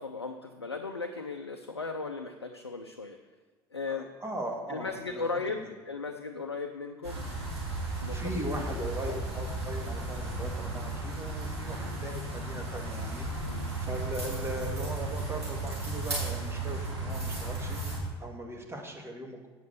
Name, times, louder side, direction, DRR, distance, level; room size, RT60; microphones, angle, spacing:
voice 1, 0.0-3.2 3.7-4.1 4.7-7.2 8.0-8.4 8.8-9.2 11.8-12.0 13.4-13.7, left 4 dB, 90° left, 4 dB, 0.5 m, -37 dB
voice 2, 3.9-5.7 8.1-13.3 13.8-17.8 18.2-19.5, right 1 dB, 20° right, 1 dB, 2.2 m, -39 dB
sound 1, 7.0-18.0, right 2 dB, 80° right, 3.5 m, -34 dB
8.4 x 6.4 x 6.9 m, 1.3 s
figure-of-eight pair, 65°, 13 cm